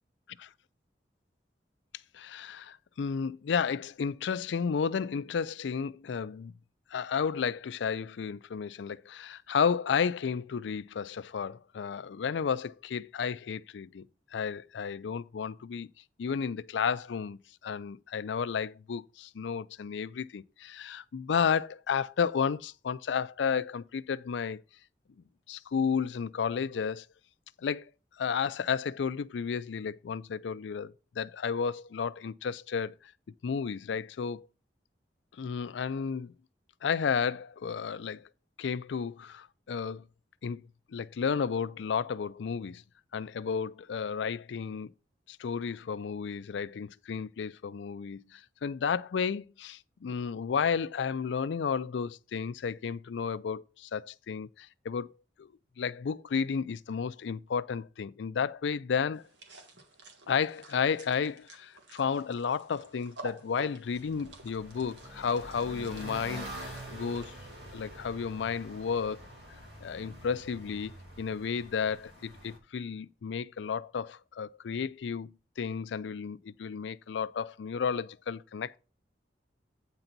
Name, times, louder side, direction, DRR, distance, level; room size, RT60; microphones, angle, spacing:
voice 1, 2.1-6.5 6.9-14.0 14.3-15.9 16.2-24.6 25.5-27.1 27.6-27.9 28.2-33.1 33.4-34.5 35.4-36.3 36.8-38.3 38.6-40.1 40.4-40.6 40.9-42.8 43.1-44.9 45.3-55.1 55.4-55.5 55.8-59.2 60.3-67.4 67.7-69.2 69.8-78.8, left 6 dB, 90° left, 0.4 m, -32 dB
sound 1, 59.1-67.3, right 2 dB, 90° right, 1.7 m, -50 dB
sound 2, 63.8-72.6, right 1 dB, 70° right, 2.6 m, -46 dB
8.9 x 4.0 x 5.9 m
head